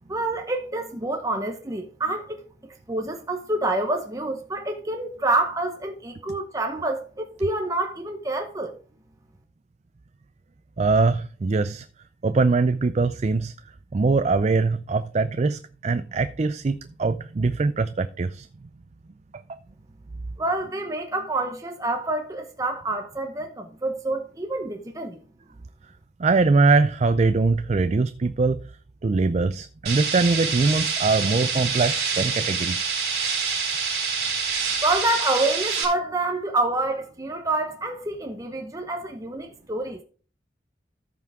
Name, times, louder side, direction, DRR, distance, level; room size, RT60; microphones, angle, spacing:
voice 1, 0.1-2.4 2.9-8.7 20.4-25.2 34.8-40.0, right 2 dB, 20° right, 0.9 m, -27 dB
voice 2, 10.8-11.9 12.2-13.5 13.9-18.5 19.3-19.6 26.2-28.6 29.0-32.9, right 3 dB, 40° right, 0.4 m, -22 dB
sound 1, 29.9-35.9, right 5 dB, 65° right, 3.5 m, -26 dB
14.0 x 5.8 x 3.6 m
head